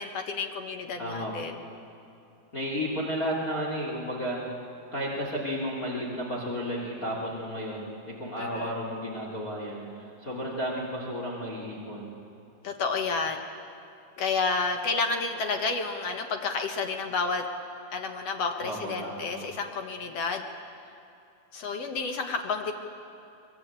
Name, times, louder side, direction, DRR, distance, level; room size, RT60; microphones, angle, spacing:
voice 1, 0.0-1.6 8.4-8.7 12.6-13.4 14.2-17.4 17.9-20.4 21.5-22.7, left 4 dB, 55° left, 5 dB, 1.9 m, -30 dB
voice 2, 1.0-1.5 2.5-4.5 4.9-12.1 18.6-19.3, equal, 25° left, -2 dB, 2.9 m, -33 dB
23.0 x 22.0 x 8.9 m, 2.7 s
omnidirectional pair, 4.4 m